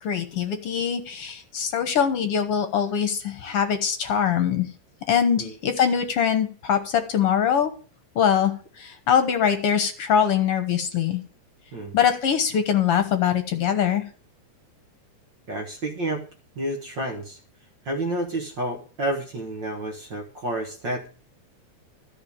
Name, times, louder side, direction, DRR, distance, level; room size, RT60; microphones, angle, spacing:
voice 1, 0.0-4.7 5.1-7.7 8.2-11.2 11.9-14.0, left 8 dB, 60° left, 8 dB, 1.9 m, -23 dB
voice 2, 15.5-16.3 16.6-17.4 17.9-21.1, right 1 dB, 45° right, 2 dB, 1.8 m, -30 dB
13.5 x 5.1 x 8.7 m, 0.39 s
omnidirectional pair, 3.4 m